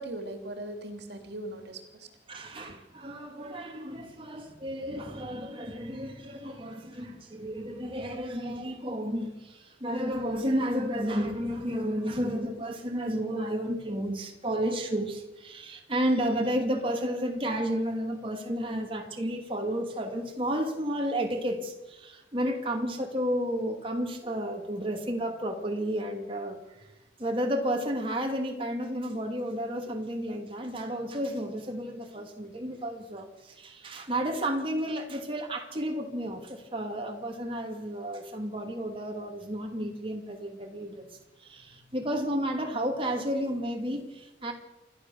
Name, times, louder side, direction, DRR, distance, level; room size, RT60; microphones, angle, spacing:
voice 1, 0.0-2.1 4.8-5.0, right 1 dB, 60° right, 6 dB, 2.9 m, -39 dB
voice 2, 2.3-26.9 27.2-41.1 41.4-44.5, equal, 30° right, 2 dB, 2.6 m, -32 dB
28.0 x 13.0 x 7.1 m, 1.0 s
head